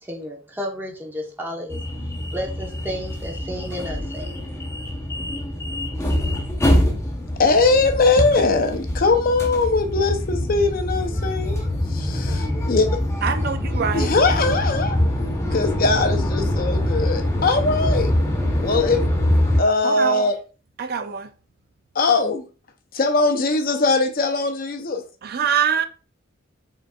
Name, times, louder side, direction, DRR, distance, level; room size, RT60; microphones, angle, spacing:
voice 1, 0.0-4.4, equal, 10° right, 1.0 m, -32 dB
sound 1, 1.7-19.6, left 1 dB, 15° left, 0.8 m, -24 dB
voice 2, 7.4-11.6 11.9-12.9 13.9-15.0 15.5-18.1 18.6-19.0 19.6-20.3 22.0-22.5 22.9-25.0, left 3 dB, 45° left, 0.6 m, -20 dB
voice 3, 13.2-14.1 19.8-20.3 20.8-21.3 25.2-25.9, right 7 dB, 50° right, 0.4 m, -24 dB
5.0 x 3.8 x 2.3 m
head